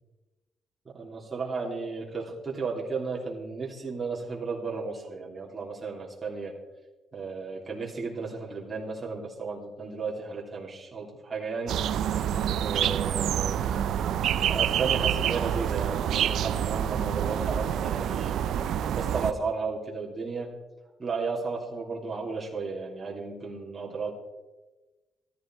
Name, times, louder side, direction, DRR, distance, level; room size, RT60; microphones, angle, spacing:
voice 1, 0.8-6.5 7.1-11.8 12.6-13.6 14.5-18.5 18.9-20.5 21.0-24.1, right 4 dB, 30° right, -4 dB, 3.1 m, -34 dB
sound 1, 11.7-19.3, right 10 dB, 75° right, 0.6 m, -27 dB
14.0 x 13.0 x 4.6 m, 1.1 s
cardioid pair, 90°, 0 cm